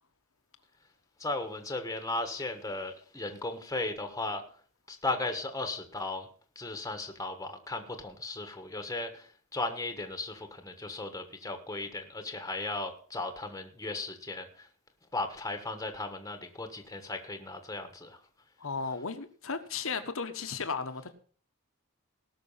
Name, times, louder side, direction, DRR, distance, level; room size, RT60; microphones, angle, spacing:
voice 1, 1.2-4.4 4.9-6.3 6.5-14.7 15.1-18.2, left 2 dB, 15° left, 6 dB, 1.3 m, -36 dB
voice 2, 18.6-21.1, left 5 dB, 65° left, 9 dB, 1.3 m, -35 dB
18.5 x 6.2 x 5.7 m, 0.44 s
head